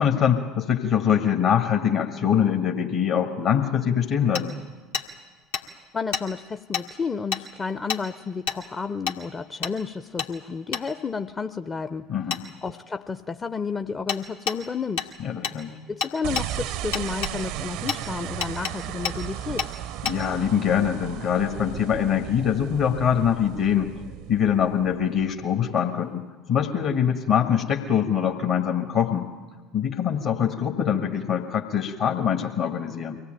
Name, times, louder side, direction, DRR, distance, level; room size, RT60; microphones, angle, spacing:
voice 1, 0.0-4.6 12.1-12.4 15.2-15.8 20.0-23.9 24.3-29.3 29.7-33.2, left 8 dB, 55° left, 2 dB, 1.6 m, -23 dB
Hammer, 4.4-4.5 4.9-5.1 5.5-5.6 6.1-6.3 6.7-6.9 7.3-7.4 7.9-8.0 8.5-8.6 9.1-9.2 9.6-9.8 10.2-10.3 10.7-10.9 12.3-12.4 14.1-14.2 14.5-14.6 15.0-15.1 15.4-15.6 16.0-16.5 16.9-17.4 17.9-18.0 18.4-18.7 19.1-19.2 19.6-19.7 20.1-20.2, left 6 dB, 75° left, 1.5 m, -28 dB
voice 2, 5.9-12.1 12.6-15.1 15.9-19.7, left 5 dB, 25° left, 9 dB, 0.6 m, -31 dB
sound 1, 16.2-25.6, right 12 dB, 60° right, 0.6 m, -35 dB
24.0 x 17.0 x 9.1 m, 1.3 s
figure-of-eight pair, 65°, 0 cm